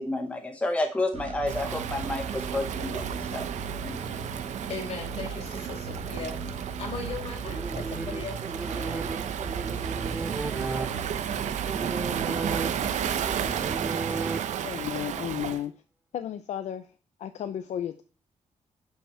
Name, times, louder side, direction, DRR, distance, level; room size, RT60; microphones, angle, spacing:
voice 1, 0.0-3.5 3.8-4.0, left 2 dB, 10° left, 5 dB, 1.0 m, -30 dB
sound 1, 1.1-13.8, right 5 dB, 55° right, 1.1 m, -37 dB
Waves surf, 1.5-15.6, right 9 dB, 85° right, 0.8 m, -33 dB
voice 2, 4.2-6.4 6.8-9.0, left 4 dB, 55° left, 0 dB, 4.5 m, -38 dB
sound 2, 7.4-14.9, right 3 dB, 15° right, 0.4 m, -35 dB
voice 3, 14.6-15.7 16.1-16.9 17.2-18.0, left 10 dB, 75° left, 9 dB, 0.6 m, -33 dB
10.5 x 5.8 x 4.4 m, 0.38 s
wide cardioid pair, 160°, 12 cm